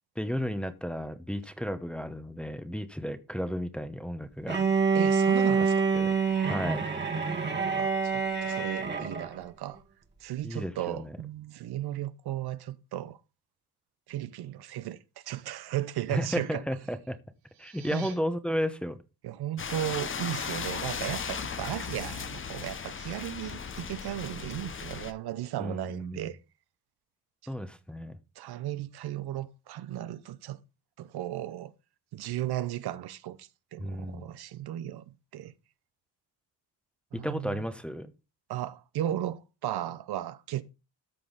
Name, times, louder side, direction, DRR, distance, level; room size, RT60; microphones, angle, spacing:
voice 1, 0.2-5.0 5.9-6.1 6.4-6.9 10.4-11.1 16.1-17.2 17.6-19.0 25.6-26.2 27.5-28.2 33.8-34.2 37.2-38.1, equal, 5° left, 0.9 m, -33 dB
Bowed string instrument, 4.5-9.3, right 5 dB, 25° right, 1.5 m, -26 dB
voice 2, 4.9-5.9 7.7-9.8 10.2-13.2 14.1-16.6 17.9-18.1 19.2-26.4 27.4-27.5 28.4-30.6 31.0-31.7 32.1-35.5 37.1-37.6 38.5-40.6, right 12 dB, 70° right, 0.7 m, -35 dB
sound 1, 17.3-18.1, right 9 dB, 90° right, 3.3 m, -48 dB
sound 2, 19.6-25.1, left 6 dB, 30° left, 0.8 m, -36 dB
13.5 x 5.4 x 4.0 m
cardioid pair, 115°, 40 cm